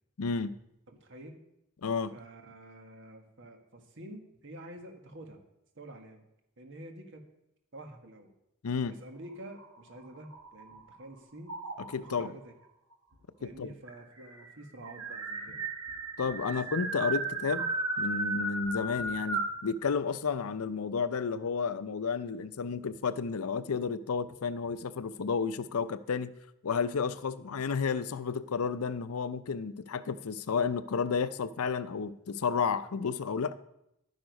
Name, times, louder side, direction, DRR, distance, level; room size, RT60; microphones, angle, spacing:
voice 1, 0.2-0.5 1.8-2.1 8.6-8.9 11.9-12.3 13.4-13.7 16.2-17.7 18.0-26.3 26.6-33.5, left 5 dB, 80° left, 14 dB, 0.6 m, -32 dB
voice 2, 0.9-1.4 2.1-5.4 5.7-6.2 6.6-7.2 7.7-8.3 8.9-11.5 12.0-12.5 13.4-15.6 16.4-16.6, right 1 dB, 55° right, 4 dB, 1.5 m, -48 dB
sound 1, 9.5-10.9 11.5-12.1 13.1-13.2 13.5-13.6 13.9-19.6, right 2 dB, 75° right, 1.7 m, -35 dB
11.5 x 9.3 x 5.3 m, 0.83 s
head